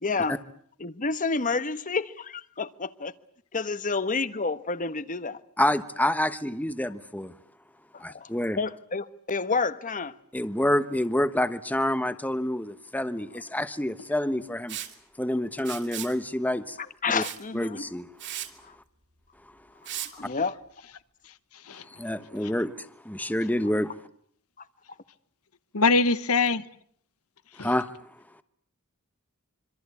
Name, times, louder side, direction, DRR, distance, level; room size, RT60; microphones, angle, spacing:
voice 1, 0.0-0.4 0.8-3.1 3.5-5.4 7.9-8.3 8.6-10.2 17.0-17.9 20.0-20.6, left 4 dB, 40° left, 1.3 m, -29 dB
voice 2, 5.6-7.3 8.0-8.6 10.3-14.8 15.2-16.8 17.1-17.2 17.5-18.1 21.8-23.9 27.6-27.9, left 1 dB, 5° left, 1.2 m, -28 dB
Liquid, 14.7-14.9 15.6-16.1 17.2-17.4 17.8-17.9 18.2-18.5 19.8-20.1, right 11 dB, 55° right, 2.9 m, -36 dB
voice 3, 25.7-26.6 27.6-27.7, left 3 dB, 80° left, 1.2 m, -22 dB
26.0 x 25.5 x 8.5 m
head